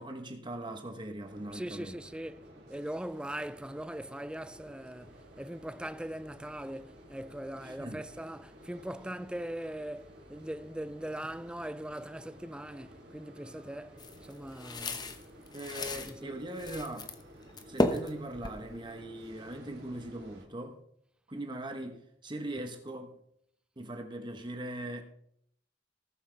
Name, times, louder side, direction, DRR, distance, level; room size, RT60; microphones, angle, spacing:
voice 1, 0.0-2.0 7.6-8.0 15.5-17.1 17.7-20.8 21.3-23.2 23.8-25.0, right 1 dB, 25° right, 1.1 m, -40 dB
sound 1, 1.2-20.4, equal, 65° right, 3.8 m, -53 dB
voice 2, 1.5-15.2 16.1-16.4, right 1 dB, 5° right, 0.4 m, -41 dB
sound 2, 14.0-16.1 16.6-17.2 17.5-19.0, left 1 dB, 25° left, 0.9 m, -34 dB
19.0 x 7.7 x 3.4 m
head